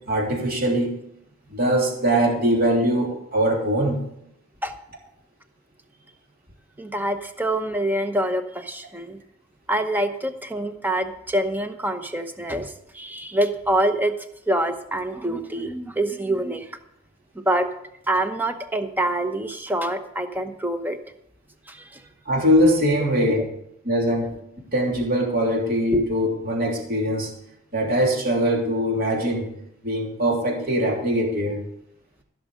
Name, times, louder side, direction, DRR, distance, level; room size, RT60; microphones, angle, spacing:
voice 1, 0.1-0.9 1.5-4.0 22.2-23.5 23.8-24.3 24.7-27.3 27.7-29.5 29.8-31.6, equal, 45° right, -1 dB, 3.1 m, -22 dB
voice 2, 6.8-9.2 9.7-14.1 14.5-16.7 17.3-17.7 18.1-21.0 21.7-22.1 23.3-23.4 25.9-26.0, right 1 dB, 10° right, 7 dB, 0.8 m, -25 dB
15.0 x 6.3 x 6.5 m, 0.77 s
head